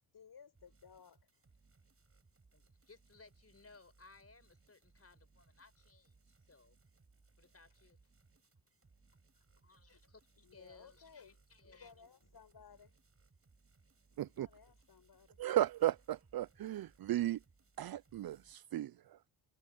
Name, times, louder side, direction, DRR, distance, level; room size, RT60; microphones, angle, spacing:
voice 1, 0.1-1.3 10.4-11.4 11.6-12.9 14.1-15.4, left 6 dB, 50° left, 5.8 m, -59 dB
sound 1, 0.5-18.6, right 3 dB, 30° right, 6.4 m, -69 dB
voice 2, 2.5-6.8 7.4-8.0 9.6-11.9, left 3 dB, 30° left, 5.7 m, -62 dB
voice 3, 14.2-14.5 15.4-17.4 17.8-18.9, right 13 dB, 50° right, 0.6 m, -35 dB
supercardioid pair, 60°, 48 cm